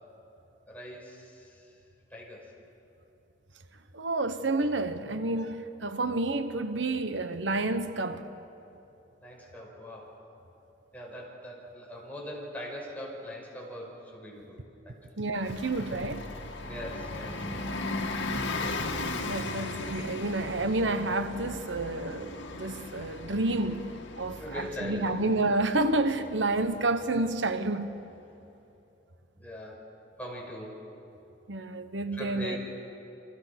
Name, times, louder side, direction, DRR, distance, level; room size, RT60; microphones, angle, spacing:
voice 1, 0.7-1.3 2.1-2.4 9.2-10.1 10.9-14.6 16.7-17.8 24.4-25.2 29.4-29.8 30.2-30.8 32.1-32.6, equal, 10° left, 5.9 m, -41 dB
voice 2, 3.9-8.3 15.2-16.3 19.3-28.0 31.5-32.6, right 2 dB, 75° right, 1.1 m, -29 dB
Bus, 15.4-27.7, left 2 dB, 85° left, 2.3 m, -37 dB
29.0 x 25.5 x 6.1 m
head